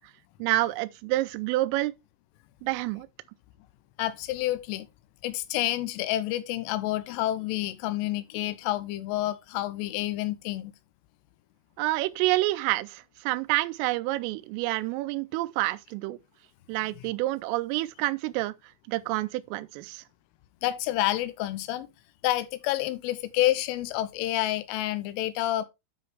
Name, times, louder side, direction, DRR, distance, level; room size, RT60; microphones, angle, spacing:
voice 1, 0.4-1.9 2.6-3.1 11.8-16.2 16.7-18.5 18.9-20.0, right 18 dB, 90° right, 3.2 m, -28 dB
voice 2, 4.0-4.9 5.2-10.7 16.9-17.0 20.6-21.9 22.2-25.7, left 15 dB, 85° left, 3.2 m, -29 dB
9.5 x 5.5 x 3.4 m
omnidirectional pair, 5.7 m